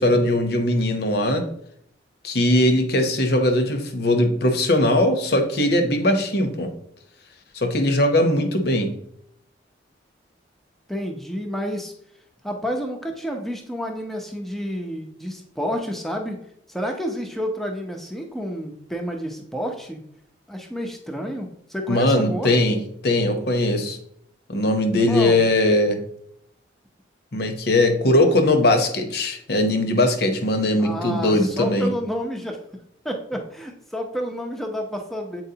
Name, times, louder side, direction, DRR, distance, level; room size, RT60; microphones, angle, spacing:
voice 1, 0.0-1.4 2.2-6.7 7.5-8.9 21.9-24.0 24.5-26.0 27.3-31.9, left 1 dB, 55° left, 5 dB, 0.9 m, -20 dB
voice 2, 10.9-11.9 12.4-16.4 16.7-20.0 20.5-22.5 25.1-25.4 30.8-32.6 33.0-35.4, equal, ahead, 2 dB, 0.6 m, -29 dB
7.9 x 4.5 x 2.8 m, 0.73 s
head